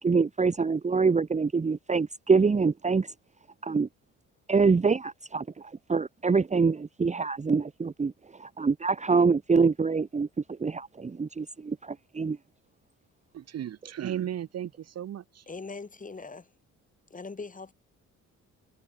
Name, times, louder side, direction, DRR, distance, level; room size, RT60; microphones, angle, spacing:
voice 1, 0.0-3.1 3.6-3.9 4.5-8.1 8.4-10.3 10.6-12.4, right 4 dB, 25° right, 1.1 m, -25 dB
voice 2, 13.3-15.4, right 10 dB, 55° right, 1.1 m, -35 dB
voice 3, 15.5-16.5 17.1-17.7, left 4 dB, 25° left, 5.8 m, -41 dB
cardioid pair, 90°, 30 cm